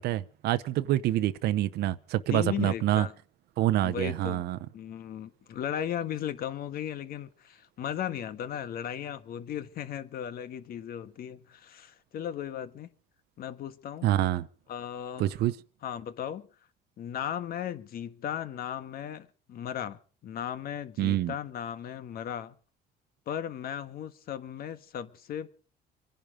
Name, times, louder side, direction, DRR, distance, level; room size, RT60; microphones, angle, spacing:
voice 1, 0.0-3.1 3.6-4.6 14.0-14.5 15.2-15.5 21.0-21.3, right 14 dB, 75° right, 0.8 m, -26 dB
voice 2, 2.3-3.1 3.8-4.4 4.7-12.9 13.4-14.1 14.7-15.4 15.8-16.5 17.0-22.5 23.3-25.5, left 9 dB, 60° left, 1.5 m, -36 dB
25.5 x 11.0 x 5.1 m
cardioid pair, 110°, 17 cm